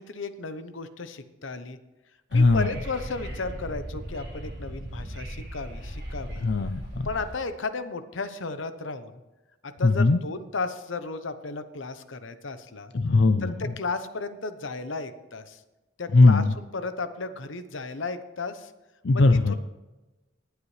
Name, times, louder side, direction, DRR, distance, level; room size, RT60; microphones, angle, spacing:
voice 1, 0.0-1.8 2.3-6.4 7.0-9.2 9.6-12.9 13.4-15.6 16.0-18.7 19.1-19.2 19.5-19.6, left 3 dB, 80° left, 11 dB, 0.9 m, -34 dB
voice 2, 2.3-2.7 6.4-7.1 9.8-10.2 12.9-13.5 16.1-16.5 19.0-19.5, left 3 dB, 60° left, 8 dB, 0.5 m, -19 dB
Wind / Subway metro underground, 2.3-7.3, equal, 55° right, 3.6 m, -37 dB
19.5 x 8.1 x 3.3 m, 1.1 s
head